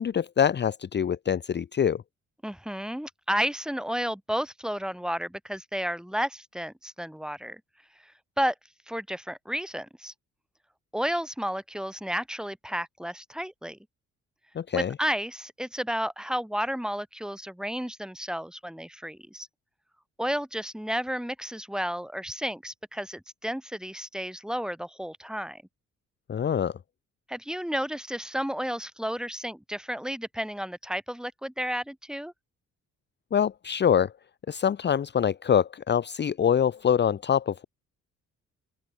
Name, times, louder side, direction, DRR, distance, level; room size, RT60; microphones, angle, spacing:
voice 1, 0.0-2.0 14.6-14.9 26.3-26.7 33.3-34.1 34.5-37.6, left 8 dB, 35° left, 0.8 m, -25 dB
voice 2, 2.4-7.6 8.0-8.1 8.4-8.5 8.9-10.1 10.9-13.8 14.7-19.5 20.2-25.6 27.3-32.3, equal, ahead, 6.7 m, -32 dB
open air
cardioid pair, 90°, 30 cm